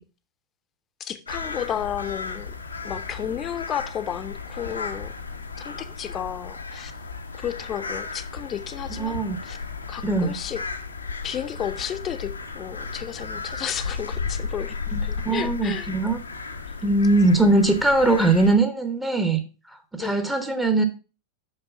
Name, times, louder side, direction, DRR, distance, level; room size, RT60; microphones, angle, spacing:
voice 1, 1.0-2.5 2.8-5.1 5.6-6.9 7.4-9.6 9.9-10.6 11.2-15.9 20.0-20.3, left 9 dB, 30° left, 0.8 m, -32 dB
sound 1, 1.3-18.6, left 4 dB, 75° left, 0.9 m, -34 dB
voice 2, 8.9-9.4 10.0-10.4 14.9-16.2 16.8-20.8, right 2 dB, 5° right, 1.0 m, -21 dB
6.0 x 5.6 x 5.4 m
figure-of-eight pair, 90°, 0 cm